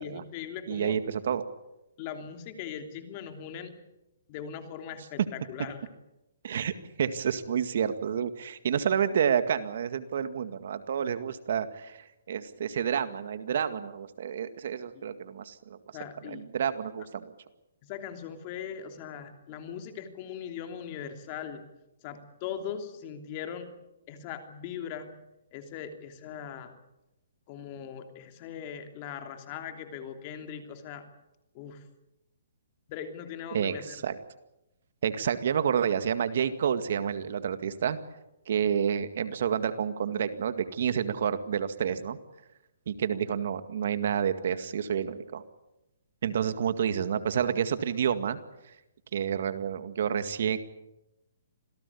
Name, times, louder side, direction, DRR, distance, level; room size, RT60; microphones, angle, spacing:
voice 1, 0.0-1.0 2.0-3.7 4.3-5.8 14.9-15.1 15.9-16.5 17.0-17.1 17.8-21.6 22.0-23.7 24.1-25.1 25.5-26.8 27.5-31.0 31.5-31.8 32.9-34.0, left 8 dB, 30° left, 6 dB, 3.1 m, -40 dB
voice 2, 0.7-1.4 6.4-6.7 7.0-15.8 16.3-17.3 33.5-34.2 35.0-38.0 38.5-42.2 42.9-45.4 46.2-48.4 49.1-50.6, right 8 dB, 55° right, 11 dB, 2.0 m, -29 dB
26.5 x 17.5 x 8.5 m, 0.92 s
hypercardioid pair, 160°, 0 cm